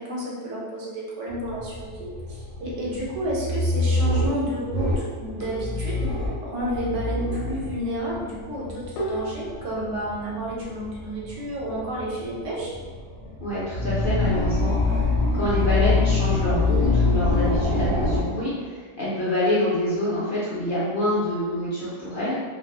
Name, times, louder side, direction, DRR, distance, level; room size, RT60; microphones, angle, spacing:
voice 1, 0.0-6.1 6.4-12.7, equal, 70° right, -5 dB, 1.0 m, -31 dB
sound 1, 1.3-18.2, left 2 dB, 25° right, 0.7 m, -26 dB
sound 2, 5.4-6.0 9.0-9.9, right 1 dB, 80° left, 1.0 m, -33 dB
voice 2, 13.4-22.3, left 1 dB, 60° left, -9 dB, 0.6 m, -26 dB
2.5 x 2.3 x 2.3 m, 1.5 s
omnidirectional pair, 1.3 m